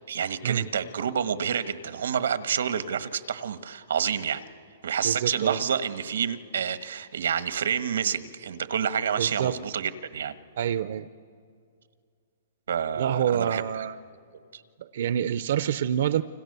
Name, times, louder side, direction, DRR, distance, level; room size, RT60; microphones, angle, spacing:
voice 1, 0.1-4.4 4.8-10.3 12.7-13.6, right 7 dB, 90° right, 12 dB, 1.4 m, -28 dB
voice 2, 5.0-5.6 9.2-9.5 10.6-11.1 13.0-14.0 14.8-16.2, right 9 dB, 55° right, 14 dB, 0.6 m, -27 dB
29.0 x 26.0 x 6.8 m, 2.2 s
hypercardioid pair, 170°, 0 cm